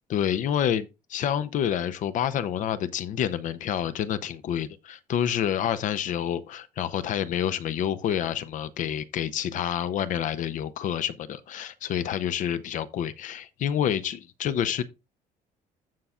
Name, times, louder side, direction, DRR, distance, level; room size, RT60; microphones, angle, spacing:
voice 1, 0.1-14.8, left 9 dB, 60° left, 0.7 m, -28 dB
15.0 x 5.6 x 2.4 m
cardioid pair, 155°, 15 cm